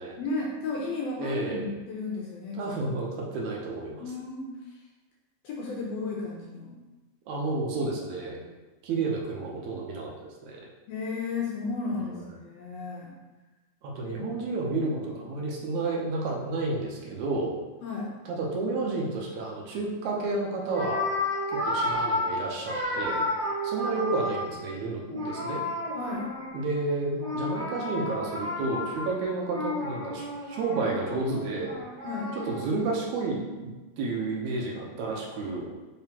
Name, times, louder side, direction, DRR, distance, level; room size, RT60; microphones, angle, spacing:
voice 1, 0.2-2.6 4.0-4.5 5.4-6.8 10.9-13.1 14.0-14.2 17.8-18.1 25.9-26.3 32.0-32.3, left 3 dB, 75° left, -3 dB, 1.5 m, -33 dB
voice 2, 1.2-1.7 2.5-4.1 7.3-8.4 8.8-10.1 10.4-10.6 12.0-12.2 13.8-17.5 18.3-21.0 21.5-23.2 23.6-25.6 26.5-31.7 32.3-35.7, right 3 dB, 80° right, -1 dB, 2.1 m, -31 dB
sound 1, 20.2-20.3 20.6-24.7 25.1-26.8 27.2-32.6, left 1 dB, 40° right, 0.7 m, -32 dB
4.9 x 3.8 x 2.8 m, 1.2 s
omnidirectional pair, 3.4 m